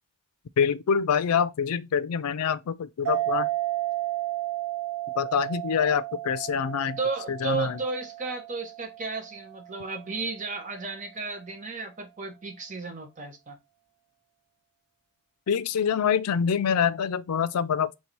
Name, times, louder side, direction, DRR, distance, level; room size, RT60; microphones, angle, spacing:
voice 1, 0.6-3.5 5.2-7.0 7.3-7.8 15.5-18.0, left 7 dB, 85° left, 0.4 m, -25 dB
sound 1, 3.1-10.1, right 16 dB, 80° right, 0.5 m, -33 dB
voice 2, 7.0-13.6, right 4 dB, 35° right, 1.1 m, -33 dB
3.6 x 2.7 x 4.5 m
head